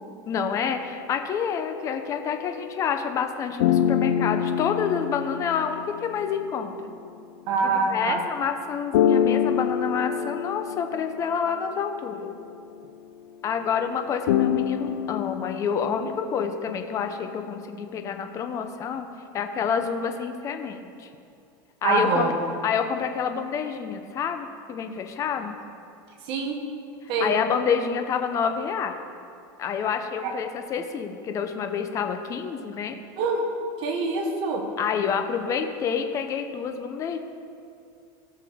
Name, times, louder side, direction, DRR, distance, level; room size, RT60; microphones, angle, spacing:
voice 1, 0.3-6.9 7.6-12.3 13.4-19.1 19.3-21.1 21.8-22.3 22.6-25.5 27.0-28.9 29.6-33.0 34.8-37.2, left 7 dB, 25° left, 6 dB, 0.7 m, -28 dB
sound 1, 0.7-3.3 3.6-7.2 8.9-12.6 14.3-16.5, left 9 dB, 90° left, 0.6 m, -27 dB
voice 2, 7.5-8.2 21.8-22.3 26.3-26.6 27.1-27.4 30.2-30.3 33.2-33.5 33.8-34.6, right 4 dB, 45° right, 2 dB, 1.6 m, -24 dB
17.0 x 6.6 x 3.6 m, 2.5 s
supercardioid pair, 155°, 12 cm